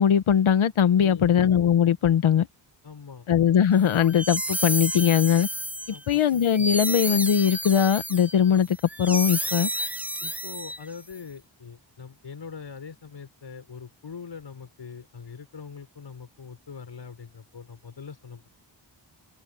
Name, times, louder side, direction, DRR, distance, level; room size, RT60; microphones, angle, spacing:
voice 1, 0.0-2.5 3.3-5.5 6.1-9.7, left 8 dB, 85° left, 1.2 m, -20 dB
voice 2, 1.0-1.4 2.8-3.3 5.9-6.2 10.2-18.4, left 6 dB, 60° left, 5.9 m, -42 dB
sound 1, 3.9-11.1, equal, 5° right, 0.7 m, -31 dB
wide cardioid pair, 110°, 47 cm